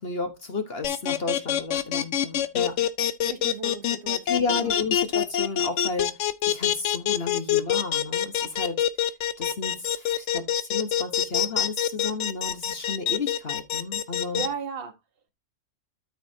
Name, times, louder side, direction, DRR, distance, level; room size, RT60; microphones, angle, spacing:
voice 1, 0.0-2.8 4.3-8.9 9.4-14.4, left 3 dB, 45° left, 1.3 m, -32 dB
sound 1, 0.8-14.5, left 10 dB, 60° left, 0.9 m, -25 dB
voice 2, 3.3-4.8 14.3-15.0, right 5 dB, 40° right, 1.5 m, -36 dB
13.0 x 4.9 x 2.8 m
omnidirectional pair, 1.6 m